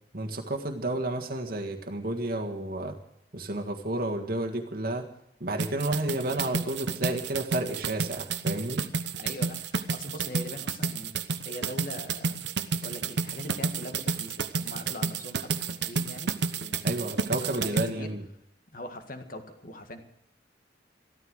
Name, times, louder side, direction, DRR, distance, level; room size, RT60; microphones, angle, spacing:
voice 1, 0.1-3.0 3.3-5.0 5.4-8.8 16.8-18.2, right 1 dB, 50° right, 2 dB, 1.6 m, -31 dB
sound 1, 5.6-17.9, right 4 dB, 75° right, 0.9 m, -30 dB
voice 2, 9.1-12.4 12.8-18.1 18.7-20.0, left 1 dB, 50° left, 7 dB, 1.8 m, -42 dB
14.0 x 13.0 x 6.4 m, 0.77 s
head